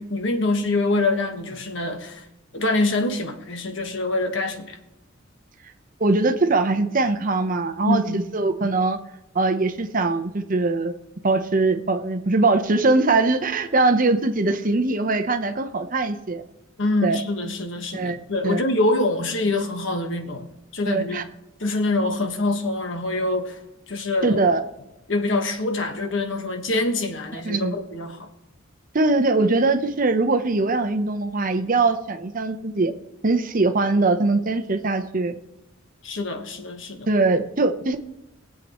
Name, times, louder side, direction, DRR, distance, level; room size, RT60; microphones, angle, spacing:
voice 1, 0.0-2.3 2.5-4.8 7.8-8.2 16.8-20.5 20.7-21.2 21.6-23.6 23.9-24.4 25.1-28.3 36.0-37.1, left 2 dB, 65° left, 5 dB, 1.4 m, -25 dB
voice 2, 6.0-9.0 9.3-10.9 11.2-16.4 17.0-17.2 17.9-18.2 18.4-18.6 20.9-21.2 24.2-24.6 27.4-27.8 28.9-32.9 33.2-35.3 37.1-38.0, right 3 dB, 40° right, 9 dB, 0.8 m, -21 dB
22.5 x 7.8 x 3.0 m, 0.95 s
head